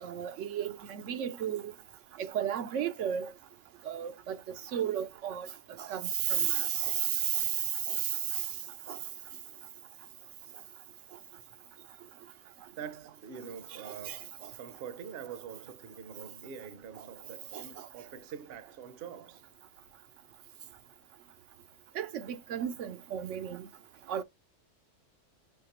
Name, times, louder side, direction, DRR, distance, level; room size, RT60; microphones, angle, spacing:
voice 1, 0.0-1.7 2.2-3.3 3.8-4.4 4.7-5.5 5.8-8.5 8.9-9.0 13.8-14.5 17.5-17.9 22.0-23.7 24.1-24.2, right 9 dB, 85° right, 0.9 m, -33 dB
voice 2, 12.7-19.5, right 7 dB, 60° right, 0.8 m, -45 dB
5.8 x 3.0 x 2.9 m
omnidirectional pair, 1.2 m